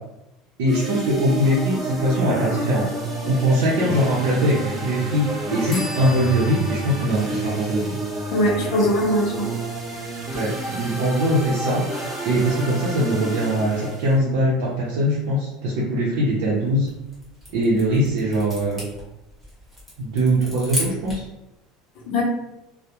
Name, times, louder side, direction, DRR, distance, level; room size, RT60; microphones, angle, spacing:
voice 1, 0.6-2.9 3.2-8.0 10.3-11.8 12.2-16.9 17.5-18.8 20.0-21.3, right 1 dB, 80° right, -6 dB, 0.6 m, -21 dB
sound 1, 0.7-14.2, right 1 dB, 20° right, 0.5 m, -30 dB
sound 2, 5.7-9.3, left 1 dB, 20° left, 0.7 m, -41 dB
voice 2, 8.3-9.6 22.1-22.2, left 1 dB, 55° left, -1 dB, 0.6 m, -21 dB
sound 3, 16.7-21.3, left 1 dB, 5° right, 1.0 m, -35 dB
2.2 x 2.0 x 2.8 m, 0.91 s
cardioid pair, 150°, 0 cm